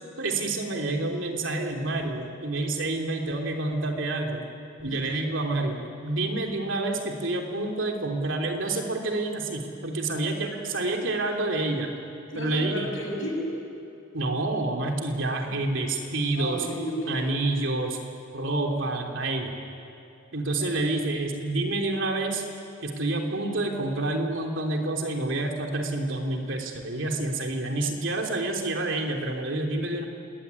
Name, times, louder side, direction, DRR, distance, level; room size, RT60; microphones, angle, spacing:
voice 1, 0.2-4.4 4.8-11.9 12.3-12.9 14.1-16.7 17.1-18.0 18.3-19.5 20.3-22.4 22.8-30.0, right 2 dB, 70° right, 2 dB, 3.4 m, -28 dB
voice 2, 12.3-13.5 16.4-17.4, equal, 80° left, -1 dB, 7.7 m, -32 dB
28.5 x 20.5 x 9.8 m, 2.7 s
head